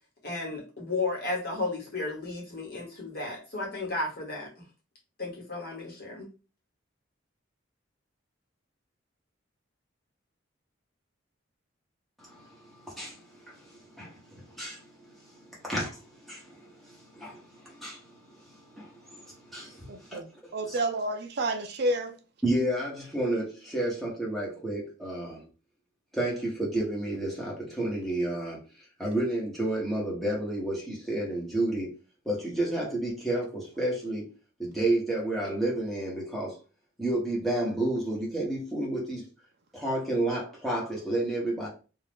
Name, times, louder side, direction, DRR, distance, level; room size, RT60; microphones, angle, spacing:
voice 1, 0.2-4.5 5.2-6.3, left 3 dB, 50° left, 1.1 m, -33 dB
voice 2, 12.2-14.9 15.4-18.0 18.4-20.2 20.6-20.8 22.4-25.4 26.1-28.6 29.0-31.9 32.2-34.3 34.6-36.6 37.0-39.3 39.7-41.7, right 1 dB, ahead, 1.1 m, -31 dB
voice 3, 19.9-20.3 20.5-22.2, right 1 dB, 50° right, 0.4 m, -29 dB
2.6 x 2.3 x 3.4 m
head